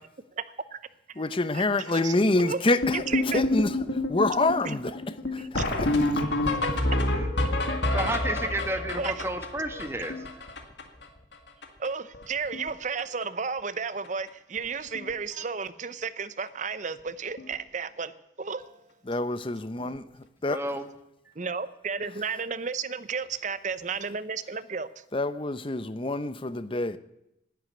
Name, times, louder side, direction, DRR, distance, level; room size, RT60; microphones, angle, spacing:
voice 1, 1.2-3.0 3.3-6.2 19.1-20.6 25.1-27.0, left 2 dB, 30° left, 0.7 m, -27 dB
voice 2, 1.9-2.6 2.9-3.4 4.6-4.7 5.4-5.6 9.0-9.4 11.8-18.1 18.4-18.9 21.3-25.0, right 5 dB, 40° right, 0.7 m, -33 dB
sound 1, 2.8-11.0 11.3-11.4 11.6-11.9 12.1-12.7 13.0-13.2 14.0-14.1 14.6-14.7 14.9-15.1 17.4-17.5 19.8-19.9, left 1 dB, 70° left, 2.0 m, -28 dB
voice 3, 7.9-10.2 20.5-20.8, right 1 dB, 15° right, 1.2 m, -31 dB
11.5 x 9.7 x 9.6 m
head